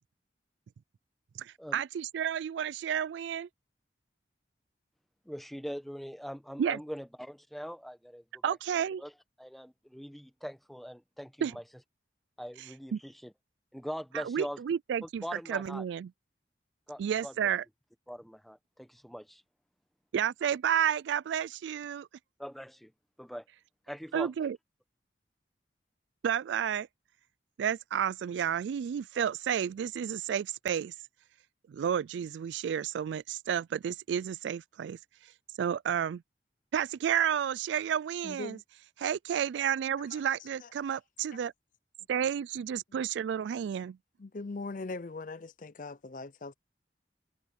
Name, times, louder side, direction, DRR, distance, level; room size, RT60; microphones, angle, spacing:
voice 1, 1.4-3.5 6.6-6.8 8.4-9.0 11.4-11.6 12.9-13.0 14.1-15.2 15.5-16.1 17.0-17.6 20.1-22.1 24.1-24.6 26.2-26.9 27.6-30.9 31.7-35.0 35.6-36.2 36.7-38.6 39.0-41.5 42.1-44.0, right 8 dB, 85° right, 0.3 m, -31 dB
voice 2, 5.2-8.5 9.0-9.1 9.4-11.6 12.4-13.3 13.7-14.6 15.0-15.8 16.9-17.3 18.1-19.4 22.4-22.9 23.2-23.4 23.9-24.3, equal, ahead, 1.1 m, -42 dB
voice 3, 38.2-38.6 40.1-40.2 40.6-40.7 42.9-43.0 44.2-46.5, left 3 dB, 45° left, 0.5 m, -41 dB
head